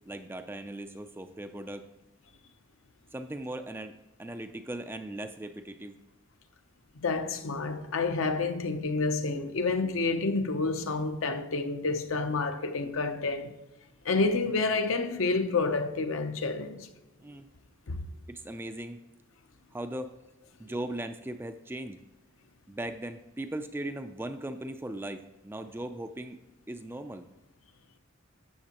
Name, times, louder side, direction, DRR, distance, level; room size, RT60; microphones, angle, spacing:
voice 1, 0.1-1.8 3.1-5.9 17.2-17.5 18.3-19.0 19.7-20.1 20.6-22.0 22.7-26.4 26.7-27.3, right 1 dB, 10° right, 0.3 m, -38 dB
voice 2, 7.0-13.6 14.0-16.9 17.9-18.0, left 3 dB, 65° left, 0.7 m, -29 dB
13.0 x 7.3 x 2.9 m
head